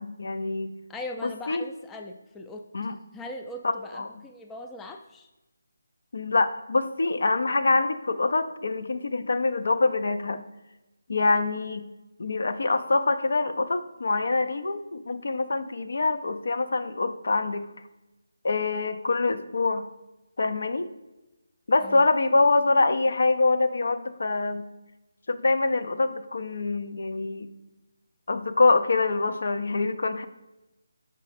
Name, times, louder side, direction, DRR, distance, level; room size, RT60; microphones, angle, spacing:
voice 1, 0.0-0.7 1.2-1.6 2.7-3.0 3.6-4.1 6.1-10.4 11.1-11.8 12.2-17.7 18.4-19.8 20.4-20.9 21.7-24.6 25.3-27.5 28.3-30.3, left 3 dB, 65° left, 9 dB, 0.5 m, -25 dB
voice 2, 0.9-2.6 3.1-5.3 21.8-22.0, left 1 dB, 10° left, 5 dB, 0.3 m, -40 dB
6.1 x 4.3 x 4.1 m, 1.0 s
figure-of-eight pair, 160°, 0 cm